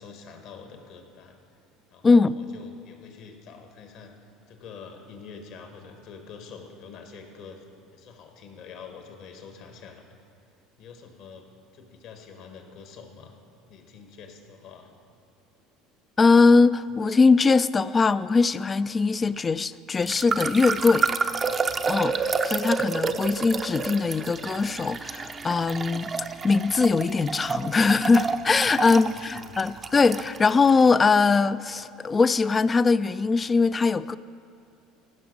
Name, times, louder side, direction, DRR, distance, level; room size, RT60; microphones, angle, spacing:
voice 1, 0.0-1.4 1.9-4.1 4.5-7.6 7.9-10.0 10.8-11.5 11.7-13.4 13.7-14.9 28.8-29.6, left 5 dB, 60° left, 1.5 m, -46 dB
voice 2, 2.0-2.3 16.2-21.1 21.9-26.1 26.4-34.2, left 4 dB, 25° left, 0.3 m, -21 dB
sound 1, 20.0-30.8, right 5 dB, 30° right, 0.6 m, -29 dB
16.0 x 6.0 x 5.4 m
hypercardioid pair, 70°, 0 cm